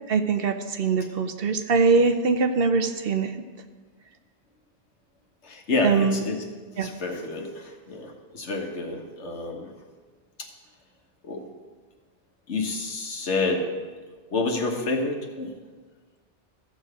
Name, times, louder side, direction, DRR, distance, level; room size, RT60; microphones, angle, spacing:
voice 1, 0.1-3.3 5.8-6.2 6.8-6.9, right 4 dB, 60° right, 8 dB, 0.8 m, -22 dB
voice 2, 5.4-6.4 6.8-9.7 10.4-10.5 11.2-11.4 12.5-13.7 14.3-15.5, left 3 dB, 80° left, 2 dB, 1.6 m, -28 dB
15.0 x 6.3 x 5.0 m, 1.4 s
omnidirectional pair, 1.2 m